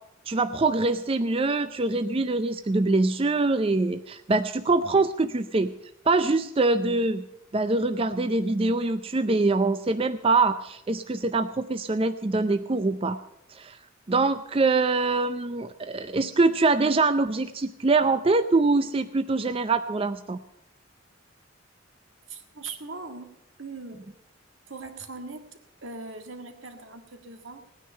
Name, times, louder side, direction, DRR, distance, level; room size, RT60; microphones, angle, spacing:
voice 1, 0.3-5.7 6.1-7.2 7.5-13.2 13.5-13.8 14.1-20.4, right 3 dB, 30° right, 10 dB, 0.5 m, -24 dB
voice 2, 22.3-23.3 23.6-24.1 24.7-27.6, right 3 dB, 75° right, 6 dB, 1.8 m, -40 dB
18.5 x 9.8 x 5.5 m, 0.85 s
head